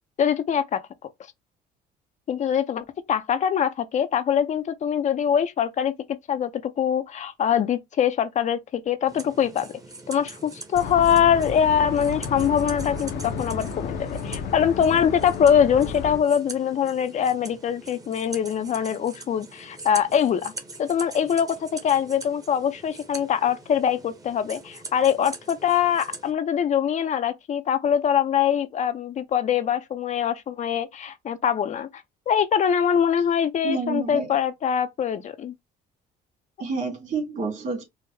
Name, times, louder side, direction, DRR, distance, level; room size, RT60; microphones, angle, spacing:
voice 1, 0.2-0.8 2.3-5.9 6.3-6.5 6.8-9.7 10.1-20.5 20.8-31.9 32.3-35.5, left 8 dB, 45° left, 0.5 m, -23 dB
sound 1, 9.1-26.3, right 3 dB, 20° right, 0.9 m, -42 dB
sound 2, 10.7-16.2, left 5 dB, 75° left, 0.8 m, -32 dB
voice 2, 33.6-34.4 36.6-37.8, right 3 dB, 50° right, 2.1 m, -29 dB
4.7 x 2.1 x 3.4 m
cardioid pair, 110°, 17 cm